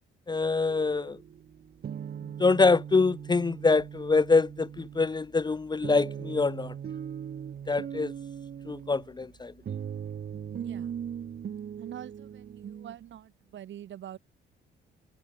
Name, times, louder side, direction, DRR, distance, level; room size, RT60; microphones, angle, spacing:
voice 1, 0.3-1.2 2.4-6.7 7.7-8.1 8.7-9.5, left 4 dB, 20° left, 0.6 m, -25 dB
sound 1, 0.6-12.9, right 8 dB, 50° right, 1.4 m, -40 dB
voice 2, 10.5-10.9 11.8-14.2, right 11 dB, 70° right, 5.2 m, -44 dB
cardioid pair, 90°, 20 cm